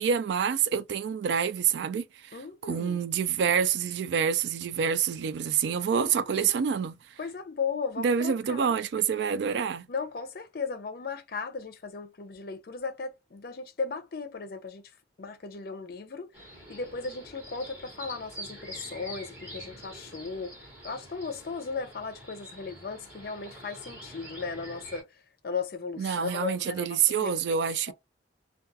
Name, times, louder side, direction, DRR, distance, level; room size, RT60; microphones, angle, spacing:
voice 1, 0.0-2.0 2.6-7.0 8.0-9.8 26.0-27.9, right 7 dB, 70° right, 0.3 m, -27 dB
voice 2, 2.3-3.0 6.0-6.6 7.2-8.8 9.9-14.9 15.2-16.3 16.7-27.4 27.9-28.0, left 5 dB, 55° left, 0.5 m, -36 dB
sound 1, 16.3-25.0, equal, 10° right, 1.1 m, -46 dB
2.3 x 2.3 x 2.6 m
head